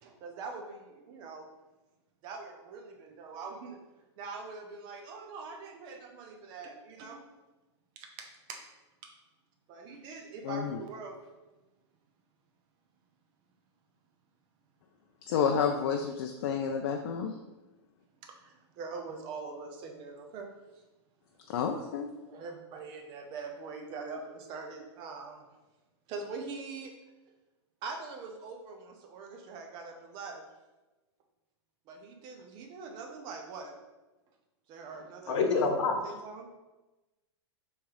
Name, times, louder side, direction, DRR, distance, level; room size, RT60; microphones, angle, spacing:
voice 1, 0.0-1.5 2.2-3.8 4.2-7.2 8.0-8.6 9.0-9.1 9.7-11.2 18.2-20.8 22.3-25.4 26.1-26.9 27.8-30.4 31.9-33.7 34.7-35.4 36.0-36.5, right 4 dB, 30° right, 3 dB, 0.7 m, -43 dB
voice 2, 10.4-10.8 15.3-17.3 21.5-22.1, left 7 dB, 55° left, 4 dB, 0.4 m, -30 dB
voice 3, 35.3-36.0, left 4 dB, 80° left, 3 dB, 0.9 m, -26 dB
3.5 x 3.2 x 4.8 m, 1.1 s
supercardioid pair, 155°, 15 cm